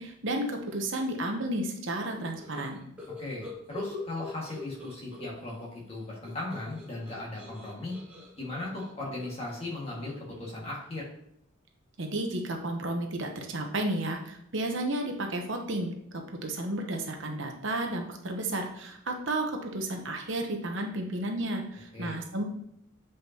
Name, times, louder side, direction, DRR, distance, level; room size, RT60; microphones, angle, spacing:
voice 1, 0.0-2.9 12.0-22.5, right 1 dB, 60° right, 3 dB, 1.0 m, -32 dB
sound 1, 2.1-5.6 5.9-10.4, left 2 dB, 5° right, 2.3 m, -44 dB
voice 2, 3.2-8.0 8.4-11.1 21.9-22.2, left 2 dB, 30° left, -4 dB, 1.9 m, -37 dB
8.1 x 5.0 x 2.9 m, 0.75 s
head